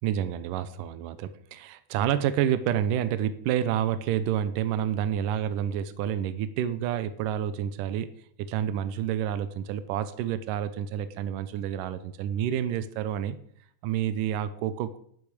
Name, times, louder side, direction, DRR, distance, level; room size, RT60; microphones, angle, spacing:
voice 1, 0.0-8.1 8.4-13.4 13.8-15.0, right 10 dB, 85° right, 12 dB, 1.9 m, -29 dB
11.0 x 10.5 x 4.9 m, 0.64 s
omnidirectional pair, 4.7 m